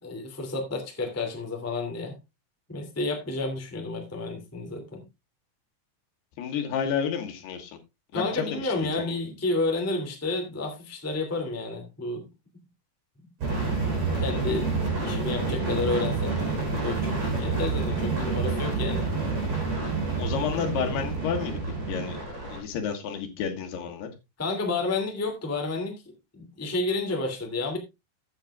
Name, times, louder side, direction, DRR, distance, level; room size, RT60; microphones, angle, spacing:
voice 1, 0.0-2.2 2.7-5.0 8.1-12.3 14.2-14.7 15.0-16.4 16.8-19.1 24.4-25.9 26.3-27.8, left 3 dB, 5° left, 3 dB, 1.6 m, -30 dB
voice 2, 6.4-7.8 8.1-9.2 20.2-22.2 22.5-24.1, left 7 dB, 75° left, 4 dB, 3.5 m, -31 dB
sound 1, 13.4-22.6, right 3 dB, 40° right, 6.5 m, -28 dB
15.0 x 8.9 x 2.4 m, 0.23 s
omnidirectional pair, 4.8 m